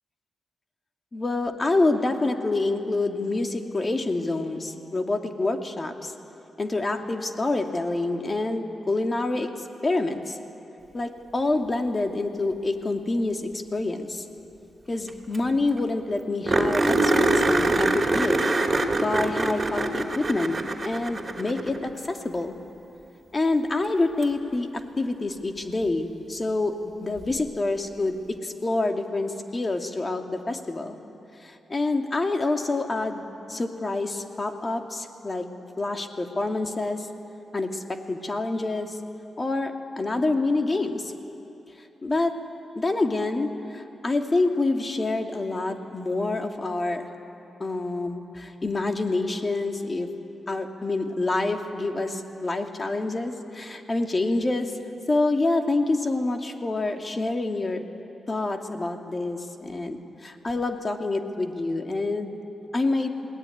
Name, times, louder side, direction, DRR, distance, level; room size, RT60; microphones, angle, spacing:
voice 1, 1.1-6.1 6.6-9.5 9.8-10.4 10.9-14.2 14.9-18.4 18.9-20.6 20.8-22.5 23.3-31.0 31.4-35.5 35.8-37.1 37.5-39.0 39.4-41.1 42.0-42.3 42.8-47.1 47.6-50.1 50.5-54.8 55.1-57.8 58.3-62.4 62.7-63.1, left 2 dB, 35° left, 4 dB, 2.5 m, -27 dB
sound 1, 15.1-15.2 15.3-15.4 15.8-15.9 16.5-21.9 24.2-24.3 27.2-27.3, right 2 dB, 35° right, 3.2 m, -24 dB
21.0 x 18.0 x 9.5 m, 3.0 s
supercardioid pair, 45°, 0 cm